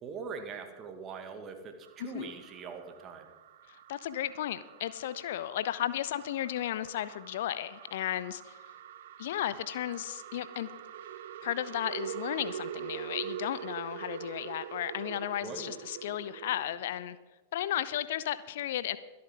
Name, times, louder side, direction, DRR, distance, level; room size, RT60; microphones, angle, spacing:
voice 1, 0.0-1.7 2.0-3.3 15.4-15.7, right 5 dB, 30° right, 6 dB, 1.8 m, -42 dB
sound 1, 1.8-17.0, right 10 dB, 55° right, 0.5 m, -44 dB
voice 2, 2.0-2.4 3.7-8.6 9.2-10.7 11.4-17.2 17.5-19.0, left 12 dB, 55° left, 15 dB, 0.5 m, -34 dB
24.0 x 8.6 x 3.8 m, 1.2 s
figure-of-eight pair, 90°, 0 cm